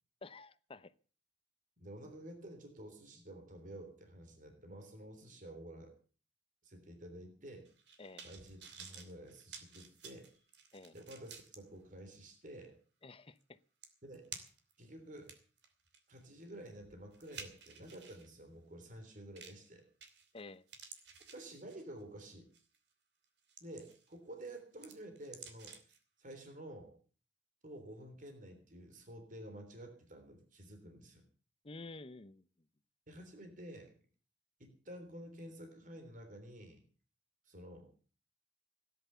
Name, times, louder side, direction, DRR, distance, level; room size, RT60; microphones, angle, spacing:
voice 1, 0.2-0.9 8.0-8.2 10.7-10.9 13.0-13.6 20.3-20.6 31.6-32.4, left 3 dB, 30° left, 0.8 m, -50 dB
voice 2, 1.8-5.9 6.6-7.7 8.2-10.3 10.9-12.8 14.0-14.3 14.8-15.3 16.1-19.9 21.3-22.5 23.6-25.8 26.2-26.9 27.6-31.3 33.1-33.9 34.6-36.8 37.4-37.9, right 1 dB, 45° right, 3.5 m, -51 dB
sound 1, 7.6-11.6 12.1-12.2 13.4-13.5 13.8-14.7 15.2-18.3 19.4-19.7 20.0-20.4 20.7-22.0 22.5-22.8 23.2-24.1 24.4-26.0 26.3-26.4, right 6 dB, 70° right, 2.9 m, -53 dB
17.5 x 10.5 x 6.9 m
head